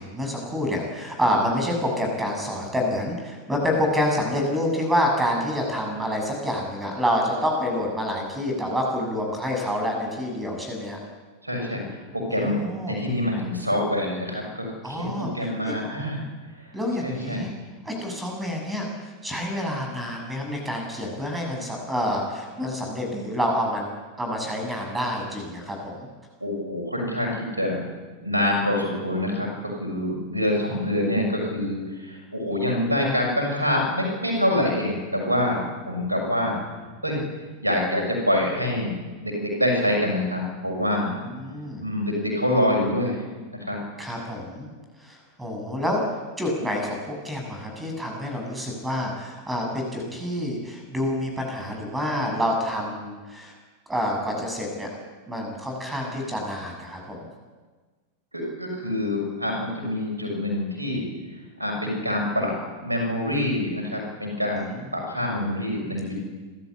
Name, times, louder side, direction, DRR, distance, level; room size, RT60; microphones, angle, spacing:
voice 1, 0.0-11.0 12.3-13.0 14.8-15.8 16.7-17.5 17.9-23.9 24.2-26.1 40.9-41.8 44.0-44.7 45.0-46.0 46.4-53.6 53.9-54.9 55.3-57.3 64.6-64.7, equal, 10° right, 2 dB, 6.9 m, -28 dB
voice 2, 11.4-12.5 12.9-16.2 17.0-17.4 26.4-27.8 28.2-36.6 37.0-37.2 37.6-38.9 39.2-41.2 41.8-43.2 43.5-43.8 58.3-61.1 61.6-62.5 62.8-66.2, left 1 dB, 85° right, 1 dB, 6.5 m, -26 dB
29.0 x 13.5 x 8.6 m, 1.4 s
figure-of-eight pair, 90°, 0 cm